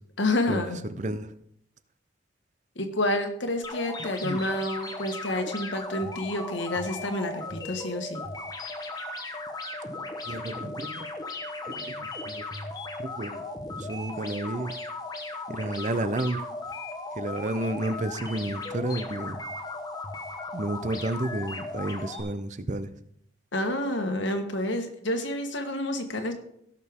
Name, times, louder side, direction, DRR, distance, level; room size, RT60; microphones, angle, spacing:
voice 1, 0.2-0.8 2.7-8.2 23.5-26.3, left 1 dB, 70° left, 5 dB, 1.5 m, -29 dB
voice 2, 1.0-1.3 4.2-4.4 10.3-11.1 11.7-12.4 13.0-13.4 13.8-14.7 15.5-16.4 17.2-19.4 20.5-22.9, right 1 dB, 40° right, 12 dB, 0.6 m, -31 dB
sound 1, 3.6-22.2, left 2 dB, 20° left, 1.1 m, -37 dB
16.5 x 6.5 x 3.6 m, 0.71 s
head